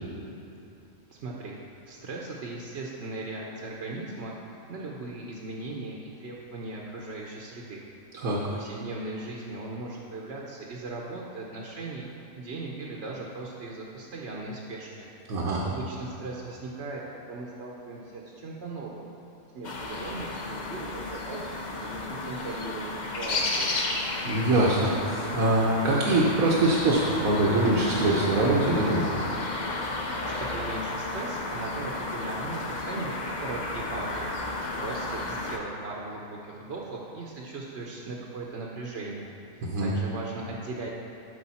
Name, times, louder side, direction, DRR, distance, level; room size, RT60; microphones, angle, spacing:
voice 1, 1.1-1.6 1.9-4.3 4.7-7.8 8.5-12.1 12.4-15.1 15.6-19.1 19.5-23.7 30.2-34.3 34.8-40.9, right 2 dB, 55° right, -2 dB, 1.0 m, -38 dB
voice 2, 8.1-8.5 15.3-15.6 24.2-29.1 39.6-39.9, right 2 dB, 85° right, -4 dB, 1.4 m, -23 dB
sound 1, 19.6-35.6, left 2 dB, 40° left, 0.7 m, -33 dB
12.5 x 5.1 x 4.2 m, 2.9 s
omnidirectional pair, 1.4 m